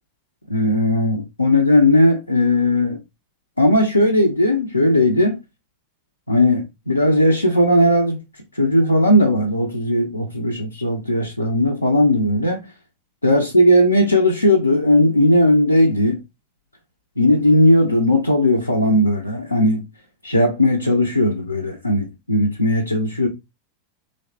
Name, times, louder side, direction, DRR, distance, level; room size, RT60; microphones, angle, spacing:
voice 1, 0.5-3.0 3.6-5.4 6.3-8.2 8.5-12.7 13.2-16.2 17.2-19.9 20.2-23.3, left 1 dB, 85° left, 0.4 m, -17 dB
3.0 x 2.1 x 2.7 m
figure-of-eight pair, 90°, 0 cm